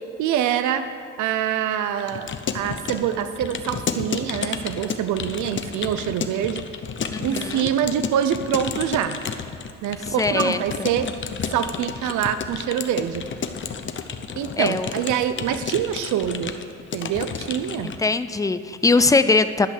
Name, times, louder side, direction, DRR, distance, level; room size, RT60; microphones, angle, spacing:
voice 1, 0.2-0.9 1.2-6.7 7.2-9.2 9.8-11.1 11.5-13.3 14.4-16.6 16.9-17.9, right 9 dB, 75° right, 10 dB, 0.6 m, -25 dB
Keyboard (musical) / Computer keyboard, 2.0-18.1, left 6 dB, 40° left, 0.8 m, -32 dB
voice 2, 7.1-7.7 10.2-10.6 14.6-14.9 17.8-19.7, left 3 dB, 10° left, 11 dB, 0.4 m, -21 dB
11.5 x 5.4 x 8.1 m, 2.4 s
cardioid pair, 90°, 30 cm